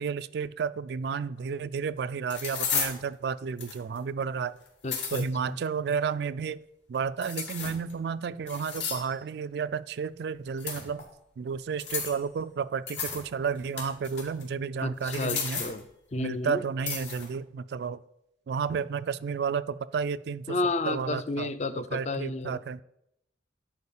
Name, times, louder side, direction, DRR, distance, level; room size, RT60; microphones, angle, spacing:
voice 1, 0.0-4.6 5.1-6.6 6.9-11.0 11.4-15.7 16.2-18.0 18.5-20.6 20.8-21.5 21.9-22.8, right 6 dB, 60° right, 14 dB, 0.3 m, -32 dB
sound 1, 1.4-1.5 2.3-3.0 3.6-4.0 4.7-5.2 7.2-7.9 8.5-9.1 10.6-11.0 11.8-12.2 12.9-13.2 13.6-14.4 15.0-15.8 16.9-17.3, left 6 dB, 75° left, 2.7 m, -33 dB
voice 2, 4.8-5.6 14.8-15.8 16.1-16.6 20.5-22.6, left 2 dB, 35° left, 13 dB, 0.5 m, -31 dB
11.0 x 4.5 x 7.1 m, 0.81 s
head